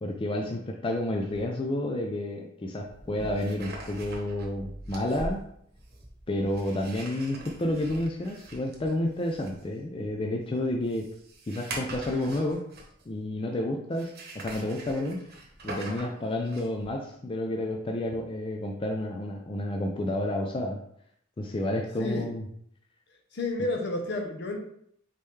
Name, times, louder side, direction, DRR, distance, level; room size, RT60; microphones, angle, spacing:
voice 1, 0.0-5.4 6.3-11.1 11.5-12.6 13.1-15.2 15.6-20.8 21.4-22.4, left 1 dB, 30° left, 1 dB, 0.4 m, -30 dB
sound 1, 1.3-1.4 2.8-13.2 13.9-16.9, right 2 dB, 55° right, 1.0 m, -43 dB
voice 2, 22.0-22.3 23.3-24.6, left 2 dB, 60° left, 2 dB, 0.8 m, -31 dB
4.1 x 3.7 x 3.2 m, 0.68 s
head